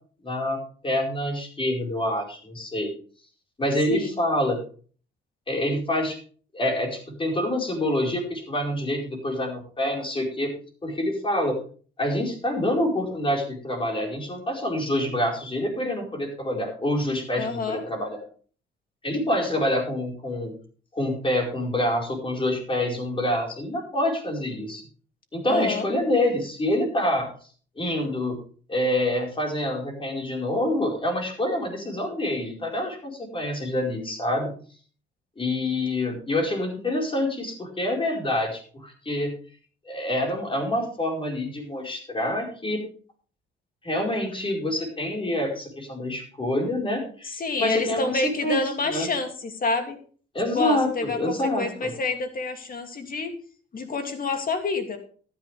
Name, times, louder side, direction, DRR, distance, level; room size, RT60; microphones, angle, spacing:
voice 1, 0.2-2.9 3.6-4.6 5.5-6.2 6.5-10.5 10.8-11.6 12.0-18.2 19.0-20.5 20.9-24.8 25.3-27.3 27.8-28.4 28.7-34.5 35.4-39.3 39.8-42.8 43.8-49.1 50.3-51.9, left 1 dB, 25° left, 1 dB, 4.8 m, -26 dB
voice 2, 17.4-17.8 25.5-25.9 47.2-50.0 50.5-53.3 53.7-55.0, left 3 dB, 45° left, 6 dB, 2.6 m, -28 dB
13.5 x 10.0 x 3.5 m, 0.42 s
cardioid pair, 90°, 20 cm